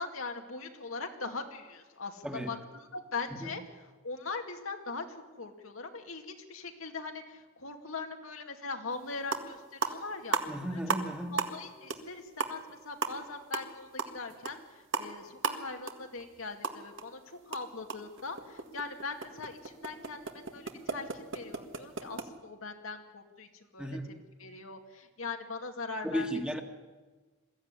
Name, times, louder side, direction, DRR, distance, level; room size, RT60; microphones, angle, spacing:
voice 1, 0.0-10.4 10.7-10.8 11.3-24.1 24.4-26.3, left 4 dB, 80° left, 4 dB, 2.4 m, -41 dB
sound 1, 8.9-9.0 9.2-9.5 9.8-11.1 11.4-11.6 11.9-12.1 12.4-17.1 17.3-22.3, right 4 dB, 65° right, 1.9 m, -35 dB
voice 2, 10.5-11.4 23.8-24.1 26.0-26.6, equal, 5° right, 4 dB, 1.8 m, -34 dB
22.0 x 15.0 x 9.8 m, 1.3 s
head